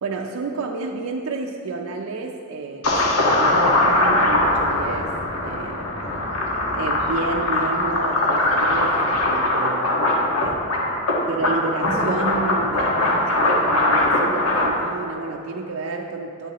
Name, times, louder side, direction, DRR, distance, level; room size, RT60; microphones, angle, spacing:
voice 1, 0.0-5.2 5.4-5.8 6.7-10.0 10.4-10.7 11.2-16.5, right 3 dB, 70° right, 1 dB, 0.5 m, -30 dB
sound 1, 2.8-14.7, left 1 dB, 90° left, 1.4 m, -21 dB
9.9 x 9.1 x 2.9 m, 2.8 s
head